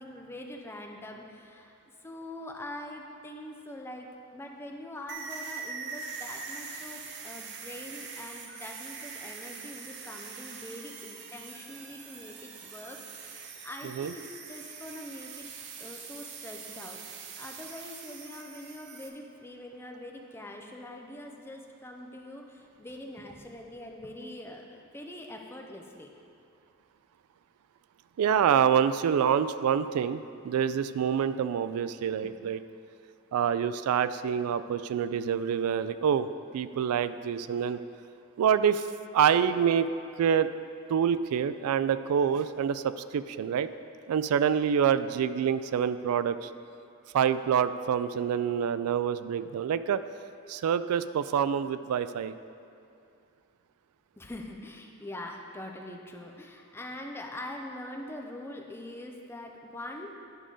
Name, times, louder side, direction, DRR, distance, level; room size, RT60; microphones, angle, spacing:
voice 1, 0.0-1.7 2.0-15.5 15.8-17.0 17.4-26.1 30.4-30.5 32.2-32.3 54.2-60.1, left 1 dB, 10° left, 1 dB, 0.5 m, -43 dB
sound 1, 5.1-19.1, right 5 dB, 50° right, 0.6 m, -43 dB
voice 2, 28.2-32.6 33.3-36.3 36.5-37.8 38.4-38.9 39.1-39.9 40.2-40.5 40.9-43.7 44.1-46.5 47.1-50.0 50.5-52.3, right 8 dB, 90° right, 14 dB, 0.3 m, -26 dB
11.0 x 4.9 x 3.8 m, 2.5 s
head